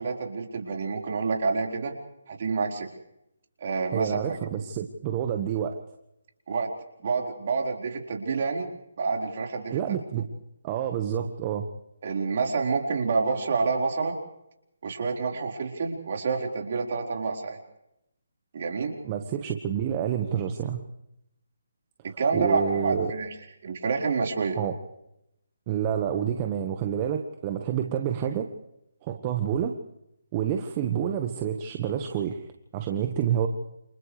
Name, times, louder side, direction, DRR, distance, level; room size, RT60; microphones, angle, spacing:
voice 1, 0.0-1.9 2.3-2.9 3.6-4.4 6.5-6.7 7.0-8.7 9.0-9.8 10.1-10.2 12.0-14.2 14.8-17.6 18.5-19.0 22.0-23.3 23.6-24.6, right 4 dB, 50° right, 1 dB, 4.5 m, -28 dB
voice 2, 3.9-5.8 9.7-10.2 10.6-11.7 19.0-20.8 22.3-23.1 24.6-24.7 25.7-28.5 29.0-29.7 30.3-32.4 32.7-33.5, right 9 dB, 30° right, 5 dB, 1.5 m, -28 dB
28.5 x 28.5 x 3.4 m, 0.84 s
figure-of-eight pair, 150°, 0 cm